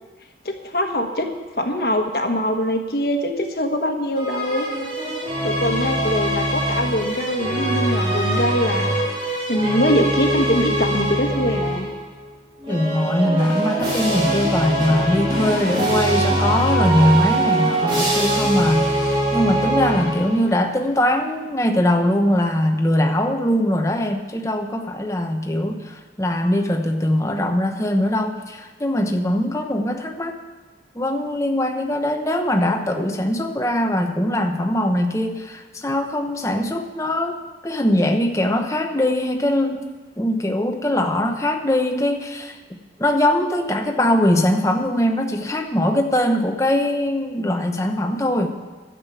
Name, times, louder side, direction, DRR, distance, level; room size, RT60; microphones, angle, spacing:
voice 1, 0.4-1.3 1.6-4.7 5.4-9.0 9.5-11.9, equal, 60° left, 4 dB, 1.4 m, -23 dB
sound 1, 4.2-12.0 12.6-20.5, right 1 dB, 30° right, 3.5 m, -22 dB
voice 2, 12.7-30.4 30.9-37.4 37.6-39.8 40.2-48.5, left 1 dB, 15° left, 4 dB, 1.0 m, -21 dB
12.0 x 7.6 x 8.4 m, 1.3 s
head